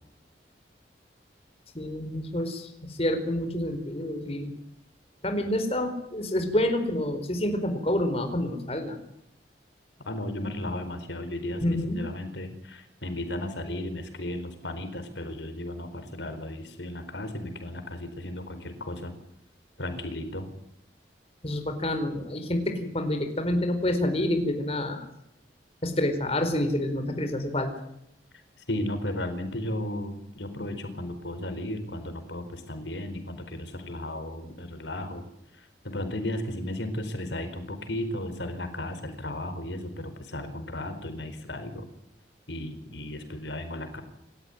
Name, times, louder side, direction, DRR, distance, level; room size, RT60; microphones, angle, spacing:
voice 1, 1.7-4.5 5.2-9.0 11.6-12.0 21.4-25.1 25.8-27.7, left 1 dB, 35° left, 6 dB, 4.5 m, -28 dB
voice 2, 10.0-19.1 19.8-20.5 28.6-35.2 35.5-41.9 42.5-44.0, left 1 dB, 85° left, 9 dB, 4.5 m, -35 dB
29.5 x 14.0 x 9.5 m, 0.80 s
head